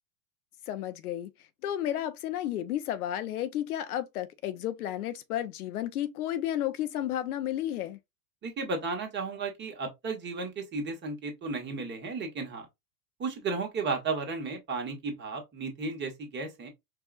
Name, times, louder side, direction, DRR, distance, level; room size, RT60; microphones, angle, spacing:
voice 1, 0.7-1.3 1.6-8.0, left 12 dB, 75° left, 0.7 m, -32 dB
voice 2, 8.4-12.7 13.2-16.7, right 4 dB, 25° right, 1.2 m, -34 dB
4.7 x 2.3 x 2.4 m
hypercardioid pair, 110°, 45 cm